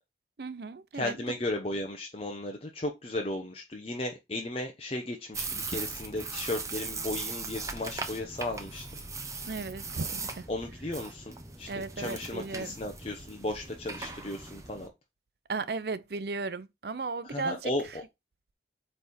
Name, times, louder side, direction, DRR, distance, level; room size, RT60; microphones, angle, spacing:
voice 1, 0.4-1.4 9.5-10.5 11.7-12.8 15.5-17.7, right 4 dB, 60° right, 0.6 m, -35 dB
voice 2, 0.9-9.0 10.5-14.9 17.2-18.0, left 1 dB, 35° left, 0.9 m, -35 dB
sound 1, 5.3-14.9, right 4 dB, 20° right, 0.8 m, -39 dB
8.2 x 3.5 x 4.3 m
head